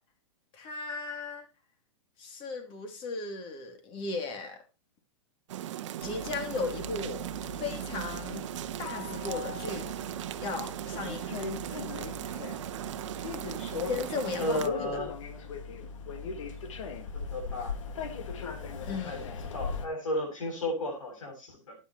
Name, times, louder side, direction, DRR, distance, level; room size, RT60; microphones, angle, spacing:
voice 1, 0.5-1.4 2.2-4.6 6.0-8.5 8.8-9.9 10.4-11.3 13.9-14.6 18.8-19.3, left 4 dB, 30° left, 5 dB, 2.8 m, -36 dB
sound 1, 5.5-14.7, right 12 dB, 65° right, 0.8 m, -38 dB
sound 2, 6.0-19.9, left 5 dB, 70° left, 1.9 m, -39 dB
voice 2, 14.4-15.1 17.3-17.8 19.0-19.2 19.5-21.8, left 1 dB, 85° left, 2 dB, 7.6 m, -33 dB
13.0 x 9.7 x 3.0 m, 0.28 s
hypercardioid pair, 135°, 17 cm